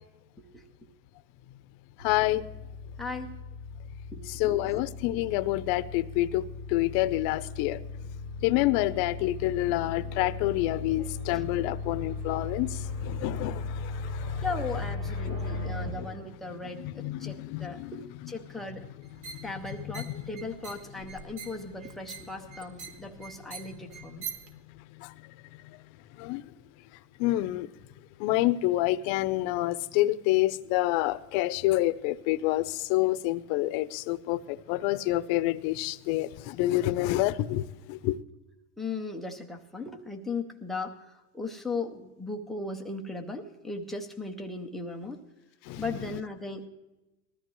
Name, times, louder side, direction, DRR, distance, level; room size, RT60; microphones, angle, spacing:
voice 1, 2.0-2.4 4.4-6.4 6.7-7.8 8.4-12.7 13.0-13.6 14.3-14.4 15.3-15.4 16.8-18.3 19.9-20.0 26.2-26.4 27.2-27.7 28.2-37.6 37.9-38.2 45.7-45.8, left 16 dB, 40° left, 0.7 m, -27 dB
sound 1, 2.0-15.9, left 4 dB, 85° right, 5.2 m, -37 dB
voice 2, 3.0-3.3 4.1-4.9 11.0-11.1 11.3-11.4 12.6-12.7 14.4-18.8 19.4-24.2 38.8-40.9 41.3-45.2 45.8-46.7, left 3 dB, ahead, 0.3 m, -37 dB
sound 2, 19.0-24.5, right 6 dB, 55° right, 2.2 m, -44 dB
20.0 x 13.5 x 3.0 m
supercardioid pair, 130°, 49 cm